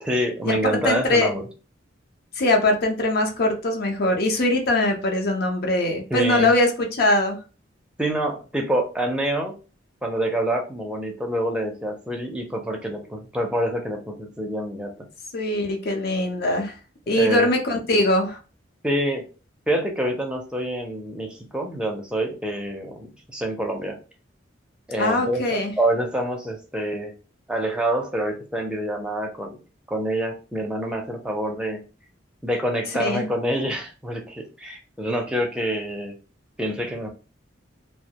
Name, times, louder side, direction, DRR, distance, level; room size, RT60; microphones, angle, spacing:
voice 1, 0.0-1.5 5.8-6.5 8.0-9.5 10.0-14.9 17.1-17.5 18.8-19.2 19.7-24.0 24.9-27.2 27.5-29.6 29.9-31.8 32.4-36.2 36.6-37.1, right 1 dB, 5° right, 1 dB, 0.4 m, -26 dB
voice 2, 0.8-1.3 2.4-7.4 15.3-16.7 17.1-18.4 25.0-25.7 33.0-33.3, left 1 dB, 55° left, 3 dB, 0.6 m, -22 dB
2.2 x 2.1 x 2.8 m, 0.34 s
head